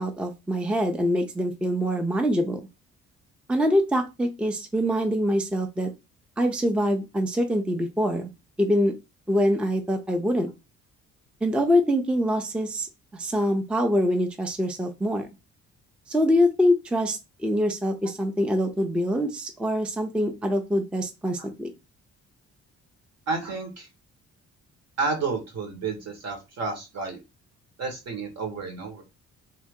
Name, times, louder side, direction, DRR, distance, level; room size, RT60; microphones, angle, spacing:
voice 1, 0.0-2.6 3.5-5.9 6.4-8.3 8.6-9.0 9.3-10.5 11.4-12.9 13.1-15.3 16.1-21.7, equal, 5° right, 5 dB, 0.4 m, -24 dB
voice 2, 23.3-23.9 25.0-27.2 27.8-29.0, right 4 dB, 60° right, 3 dB, 1.4 m, -30 dB
2.8 x 2.6 x 3.6 m, 0.25 s
cardioid pair, 90°, 30 cm